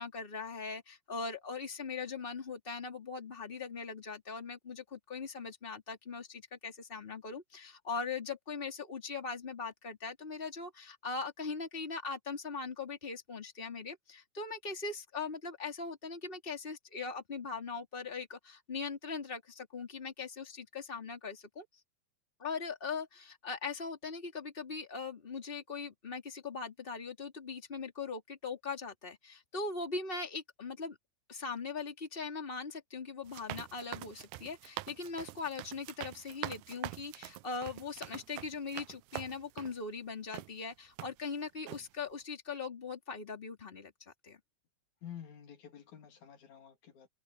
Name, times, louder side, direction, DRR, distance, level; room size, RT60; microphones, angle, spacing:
voice 1, 0.0-21.6 22.4-31.0 31.3-44.4, left 4 dB, 20° left, 3.2 m, -40 dB
sound 1, 33.2-39.8 40.3-40.5 41.0-41.4 41.7-41.8, right 17 dB, 85° right, 2.0 m, -45 dB
voice 2, 45.0-47.1, left 9 dB, 75° left, 3.9 m, -50 dB
omnidirectional pair, 3.4 m